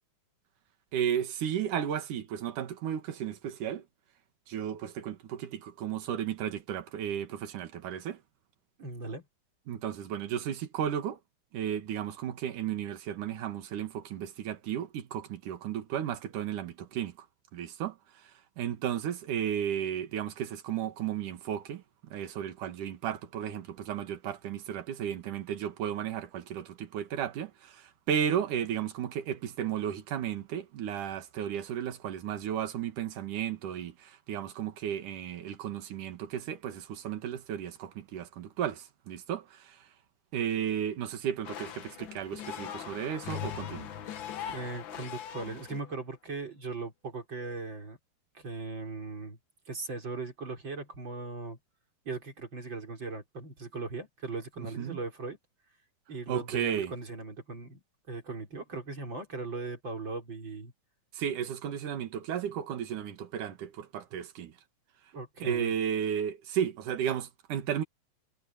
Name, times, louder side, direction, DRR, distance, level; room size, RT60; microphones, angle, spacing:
voice 1, 0.9-3.8 4.5-8.2 9.7-11.2 11.5-17.1 17.5-17.9 18.6-21.8 22.1-39.8 40.3-43.9 54.6-55.0 56.3-56.9 61.1-64.5 65.4-67.8, right 9 dB, 75° right, 3.3 m, -34 dB
voice 2, 8.8-9.2 44.5-48.0 48.3-49.4 49.7-51.6 52.0-55.4 56.1-60.7 65.1-65.7, right 3 dB, 35° right, 4.6 m, -39 dB
sound 1, 41.4-45.9, left 9 dB, 70° left, 1.1 m, -40 dB
omnidirectional pair, 3.7 m